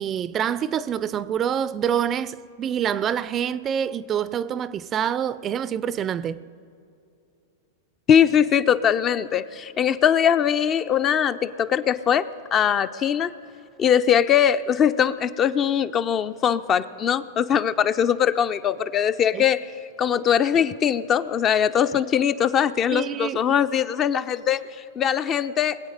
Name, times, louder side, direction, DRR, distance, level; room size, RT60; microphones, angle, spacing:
voice 1, 0.0-6.4 19.3-19.4 22.9-23.4, right 9 dB, 30° right, 0.4 m, -26 dB
voice 2, 8.1-13.3 13.8-19.6 20.0-24.6 25.0-25.8, left 8 dB, 30° left, 0.5 m, -21 dB
22.0 x 8.3 x 5.2 m
hypercardioid pair, 110°, 0 cm